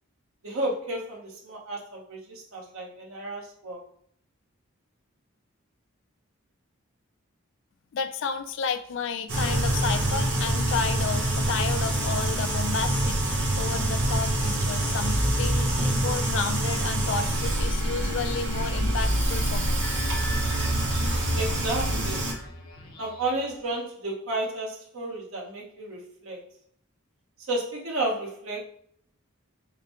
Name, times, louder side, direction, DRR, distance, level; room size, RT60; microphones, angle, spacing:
voice 1, 0.4-3.8 21.3-22.3 23.0-26.4 27.5-28.6, right 2 dB, 80° right, -1 dB, 1.0 m, -32 dB
voice 2, 7.9-19.9, left 6 dB, 60° left, 10 dB, 0.3 m, -32 dB
sound 1, 9.3-22.3, right 1 dB, 55° right, 0.9 m, -26 dB
sound 2, 17.0-23.7, left 1 dB, 85° left, 0.9 m, -41 dB
5.0 x 2.0 x 3.1 m, 0.65 s
head